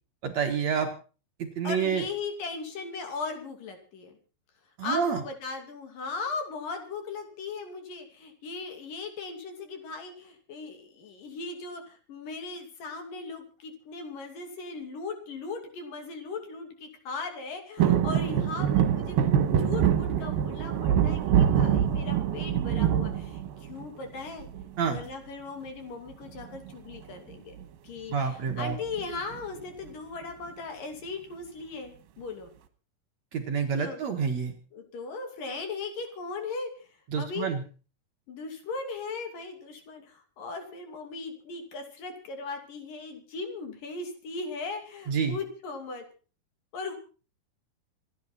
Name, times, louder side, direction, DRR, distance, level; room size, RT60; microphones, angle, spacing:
voice 1, 0.2-0.9 1.4-2.0 4.8-5.2 24.8-25.0 28.1-28.8 33.3-34.5 37.1-37.6 45.1-45.4, right 6 dB, 55° right, 4 dB, 2.5 m, -28 dB
voice 2, 1.6-4.1 4.8-24.5 24.8-27.5 27.8-32.5 33.8-34.0 34.7-36.9 37.2-37.5 38.3-46.0 46.7-46.9, left 4 dB, 65° left, 5 dB, 4.3 m, -38 dB
sound 1, 17.8-24.0 24.4-25.0 26.3-26.7 27.0-27.1 27.3-27.6 28.5-29.4 29.9-30.0, right 9 dB, 75° right, 3.1 m, -25 dB
27.5 x 10.0 x 4.3 m, 0.37 s
omnidirectional pair, 4.4 m